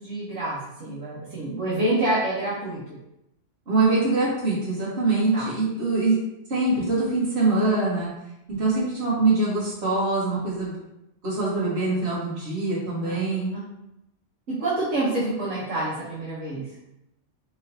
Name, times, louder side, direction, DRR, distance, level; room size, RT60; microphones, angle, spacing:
voice 1, 0.0-3.0 5.3-5.5 13.0-13.2 13.5-13.6 14.6-16.7, right 1 dB, 75° right, -9 dB, 1.4 m, -27 dB
voice 2, 3.7-6.2 6.5-8.1 8.5-10.8 11.2-13.6, right 3 dB, 60° right, -7 dB, 1.7 m, -23 dB
4.2 x 3.7 x 2.7 m, 0.85 s
omnidirectional pair, 1.3 m